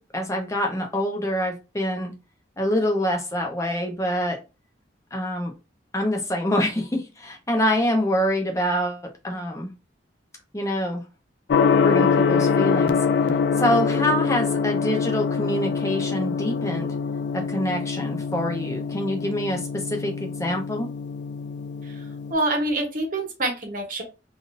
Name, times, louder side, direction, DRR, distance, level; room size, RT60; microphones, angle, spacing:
voice 1, 0.0-2.1 2.6-4.4 5.1-5.5 5.9-9.7 10.5-11.0 11.8-13.0 13.6-16.9 17.3-20.9, equal, 15° left, 3 dB, 0.7 m, -26 dB
Gong, 11.5-22.3, left 5 dB, 60° left, 0.3 m, -24 dB
voice 2, 22.3-24.0, right 2 dB, 45° right, 2 dB, 1.0 m, -26 dB
3.5 x 2.5 x 2.5 m, 0.28 s
head